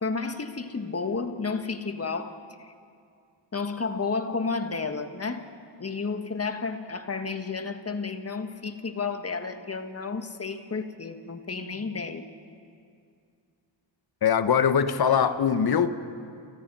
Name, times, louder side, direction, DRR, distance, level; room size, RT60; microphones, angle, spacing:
voice 1, 0.0-2.7 3.5-5.5 5.8-12.3, left 4 dB, 30° left, 7 dB, 1.7 m, -32 dB
voice 2, 14.2-15.9, left 7 dB, 50° left, 11 dB, 1.3 m, -22 dB
28.5 x 17.5 x 5.6 m, 2.3 s
supercardioid pair, 60°, 47 cm